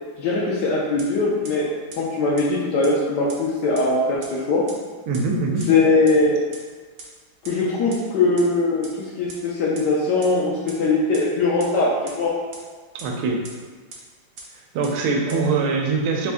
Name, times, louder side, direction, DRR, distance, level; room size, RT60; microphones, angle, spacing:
voice 1, 0.2-4.6 5.7-6.4 7.4-12.4 15.3-15.4, left 3 dB, 75° left, -4 dB, 1.0 m, -21 dB
sound 1, 1.0-1.1 1.4-1.5 1.9-2.0 2.4-2.5 2.8-2.9 3.3-3.4 3.8-3.9 4.2-4.3 4.7-4.8 5.1-5.2 5.6-5.7 6.1-6.2 6.5-6.6 7.0-7.1 7.4-7.5 7.9-8.0 8.4-8.5 8.8-8.9 9.3-9.4 9.8-9.9 10.2-10.3 10.7-10.8 11.1-11.2 11.6-11.7 12.1-12.2 12.5-12.6 13.0-13.1 13.4-13.5 13.9-14.0 14.4-14.5 14.8-14.9 15.3-15.4, right 4 dB, 65° right, 0.8 m, -38 dB
voice 2, 5.1-5.7 12.9-13.4 14.5-16.3, right 4 dB, 85° right, 1 dB, 1.5 m, -23 dB
4.1 x 2.5 x 3.5 m, 1.5 s
omnidirectional pair, 2.3 m